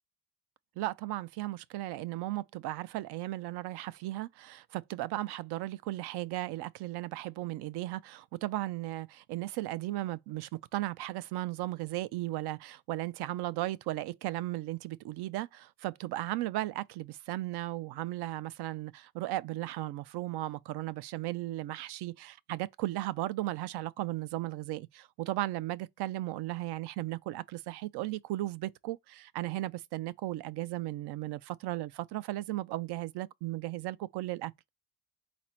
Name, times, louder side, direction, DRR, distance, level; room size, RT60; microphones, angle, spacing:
voice 1, 0.8-34.5, right 16 dB, 80° right, 0.5 m, -36 dB
4.2 x 2.4 x 4.3 m
cardioid pair, 125°, 39 cm